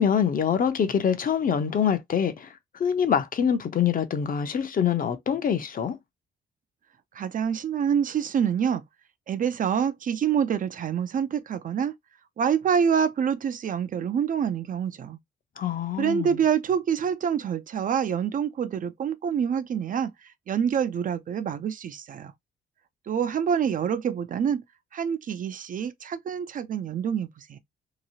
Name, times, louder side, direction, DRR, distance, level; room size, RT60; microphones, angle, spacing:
voice 1, 0.0-6.0 15.6-16.4, left 8 dB, 45° left, 0.6 m, -25 dB
voice 2, 7.1-8.8 9.3-11.9 12.4-15.2 16.0-20.1 20.5-22.3 23.1-24.6 24.9-27.6, right 8 dB, 45° right, 0.4 m, -26 dB
2.9 x 2.3 x 2.7 m
cardioid pair, 90°, 20 cm